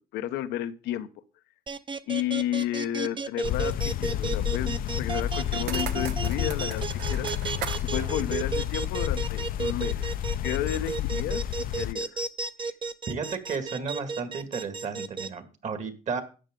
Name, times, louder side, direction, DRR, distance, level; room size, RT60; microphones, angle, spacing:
voice 1, 0.1-1.1 2.1-6.8 7.1-7.3 7.8-10.1 10.4-11.4 11.7-12.2, left 12 dB, 85° left, 0.8 m, -32 dB
sound 1, 1.7-15.3, right 4 dB, 30° right, 0.8 m, -32 dB
sound 2, 3.4-11.9, left 11 dB, 60° left, 0.5 m, -30 dB
sound 3, 5.2-9.4, right 8 dB, 80° right, 1.0 m, -40 dB
voice 2, 13.1-16.2, right 5 dB, 45° right, 2.0 m, -33 dB
12.5 x 8.7 x 3.7 m
cardioid pair, 110°, 17 cm